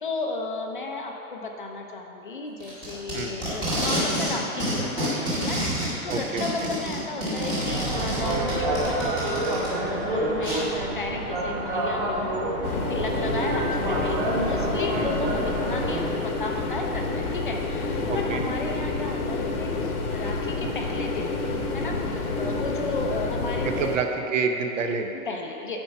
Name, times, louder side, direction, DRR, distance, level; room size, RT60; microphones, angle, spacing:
voice 1, 0.0-12.6 12.9-21.3 21.7-24.0 25.3-25.8, left 3 dB, 35° left, 2 dB, 0.5 m, -34 dB
Packing tape duct tape, 2.6-4.3 4.6-9.7 10.4-10.6, equal, 10° right, 1.1 m, -28 dB
voice 2, 6.1-6.7 14.9-15.1 18.1-18.4 23.6-25.1, right 5 dB, 60° right, 5 dB, 0.8 m, -28 dB
sound 1, 7.6-16.0, right 1 dB, 35° right, 1.4 m, -28 dB
sound 2, 12.6-24.0, left 3 dB, 85° left, 1.3 m, -29 dB
9.6 x 4.4 x 5.7 m, 2.8 s
hypercardioid pair, 175°, 43 cm